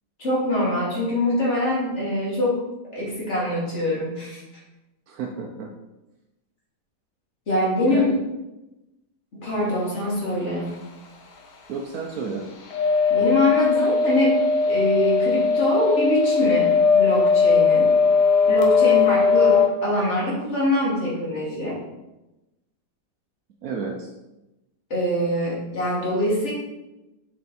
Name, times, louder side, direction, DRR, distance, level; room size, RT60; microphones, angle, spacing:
voice 1, 0.2-2.6 2.9-4.4 7.5-8.0 9.4-10.7 13.1-14.4 14.7-17.9 18.4-21.8 24.9-26.5, left 1 dB, 40° left, -6 dB, 2.7 m, -24 dB
voice 2, 5.1-5.7 7.9-8.0 11.7-12.4 23.6-24.1, right 5 dB, 65° right, 0 dB, 1.1 m, -31 dB
sound 1, 12.7-19.7, left 5 dB, 80° left, 1.5 m, -19 dB
6.6 x 4.7 x 4.2 m, 0.98 s
omnidirectional pair, 1.8 m